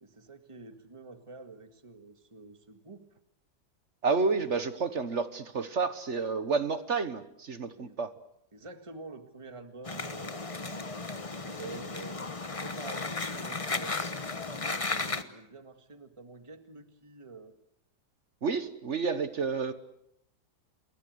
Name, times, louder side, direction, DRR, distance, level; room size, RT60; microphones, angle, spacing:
voice 1, 0.0-3.0 7.8-8.0 8.5-12.2 12.5-14.0 14.5-17.5, right 3 dB, 20° right, 7 dB, 1.8 m, -48 dB
voice 2, 4.0-8.1 18.4-19.7, right 4 dB, 45° right, 12 dB, 1.4 m, -30 dB
sound 1, 9.8-15.2, left 3 dB, 25° left, 1.0 m, -35 dB
28.5 x 22.0 x 7.9 m, 0.79 s
omnidirectional pair, 1.8 m